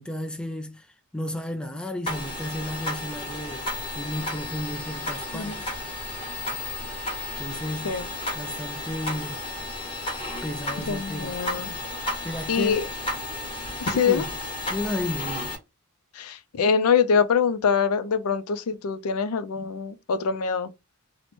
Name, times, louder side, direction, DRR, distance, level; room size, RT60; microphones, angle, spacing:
voice 1, 0.0-3.7 4.0-5.7 7.4-8.0 8.3-9.4 10.4-11.4 12.2-12.8 13.9-14.3 14.7-15.5, left 1 dB, 5° left, 0.3 m, -33 dB
sound 1, 2.1-15.6, left 1 dB, 25° left, 1.2 m, -33 dB
voice 2, 10.9-11.8 12.5-12.9 13.8-14.2 16.1-20.7, left 6 dB, 80° left, 0.4 m, -24 dB
3.0 x 2.1 x 4.1 m
head